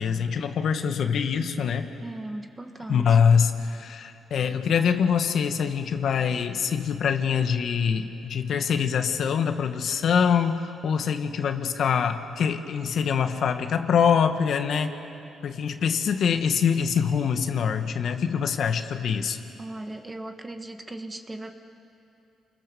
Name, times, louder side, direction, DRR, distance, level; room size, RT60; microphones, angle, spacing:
voice 1, 0.0-1.9 2.9-14.9 15.4-19.4, left 7 dB, 65° left, 7 dB, 1.4 m, -24 dB
voice 2, 2.0-3.2 19.6-21.5, right 2 dB, 20° right, 6 dB, 1.7 m, -37 dB
29.0 x 21.5 x 7.0 m, 2.7 s
cardioid pair, 90°, 0 cm